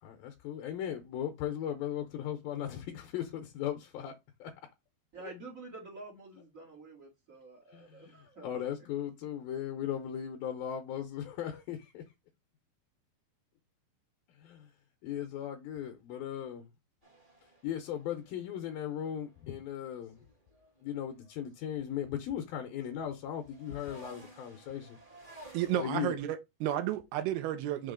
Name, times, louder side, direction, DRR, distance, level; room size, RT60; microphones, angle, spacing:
voice 1, 0.0-4.5 5.2-5.3 7.7-12.0 14.3-14.7 15.0-16.7 17.6-20.2 20.8-25.0 25.7-26.2, left 10 dB, 75° left, 2.3 m, -38 dB
voice 2, 5.1-8.5 8.8-8.9, right 3 dB, 65° right, 0.8 m, -49 dB
sound 1, 17.0-21.5 21.8-25.9, right 2 dB, 35° right, 0.8 m, -56 dB
voice 3, 25.5-27.9, right 12 dB, 80° right, 2.6 m, -32 dB
6.6 x 3.0 x 5.0 m
omnidirectional pair, 4.7 m